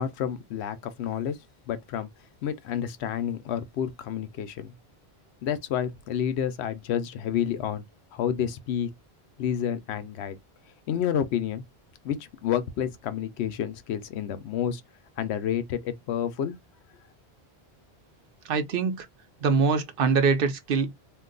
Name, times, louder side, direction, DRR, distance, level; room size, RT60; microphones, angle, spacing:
voice 1, 0.0-1.4 1.7-2.1 2.4-4.7 5.4-7.8 8.1-8.9 9.4-10.4 10.9-11.6 12.0-14.8 15.2-16.6, left 9 dB, 85° left, 0.8 m, -29 dB
voice 2, 18.5-19.1 19.4-21.0, right 5 dB, 65° right, 0.7 m, -23 dB
2.6 x 2.2 x 3.7 m
omnidirectional pair, 1.1 m